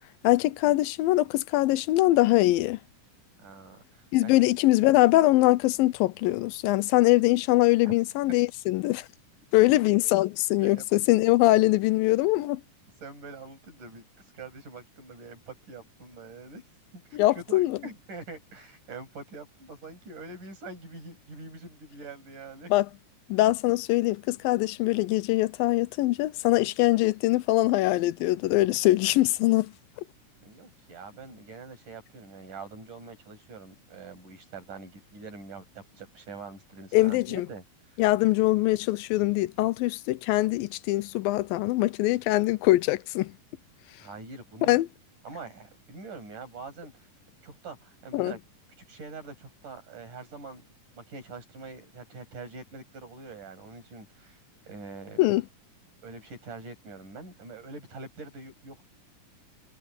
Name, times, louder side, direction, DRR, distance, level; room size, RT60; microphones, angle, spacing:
voice 1, 0.2-2.8 4.1-9.1 9.5-12.6 17.2-17.8 22.7-22.9 23.3-29.7 36.9-37.5 38.0-43.4 44.7-44.9 48.1-48.3 55.2-55.4, left 18 dB, 85° left, 2.4 m, -23 dB
voice 2, 3.4-4.4 7.8-8.0 10.6-11.1 13.0-14.0 14.3-16.7 16.9-22.7 30.4-37.6 37.9-38.0 44.0-44.8 45.2-47.1 47.4-48.4 48.9-50.6 51.0-54.4 54.6-55.2 56.0-58.9, right 3 dB, 60° right, 9.3 m, -44 dB
omnidirectional pair, 4.0 m